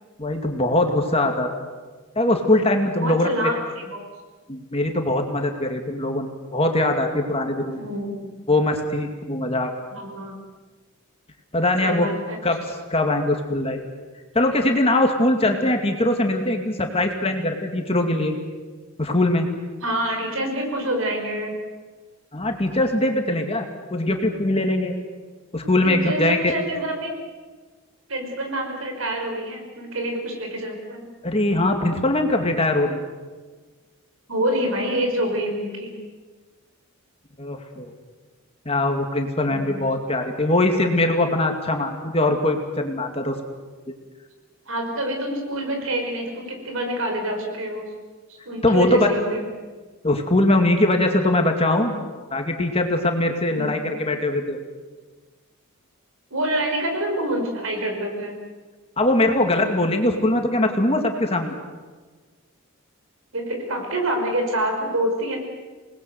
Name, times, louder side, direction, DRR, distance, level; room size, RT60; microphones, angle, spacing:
voice 1, 0.2-1.5 2.2-3.5 4.5-7.8 8.5-9.7 11.5-12.1 12.4-12.6 12.9-13.8 14.3-18.4 19.0-19.5 22.3-23.7 23.9-24.9 25.5-26.5 31.2-33.0 37.4-37.9 38.7-43.4 48.6-49.1 50.0-51.9 52.3-54.6 59.0-61.5, left 1 dB, 25° left, 4 dB, 2.4 m, -21 dB
voice 2, 3.0-4.1 7.7-8.3 9.9-10.3 11.8-12.4 19.8-21.6 25.8-27.1 28.1-31.1 34.3-36.0 39.4-39.8 44.7-47.9 48.3-49.5 53.5-53.8 56.3-58.4 63.3-65.4, right 1 dB, 70° right, 3 dB, 5.6 m, -27 dB
27.5 x 20.0 x 7.9 m, 1.4 s
head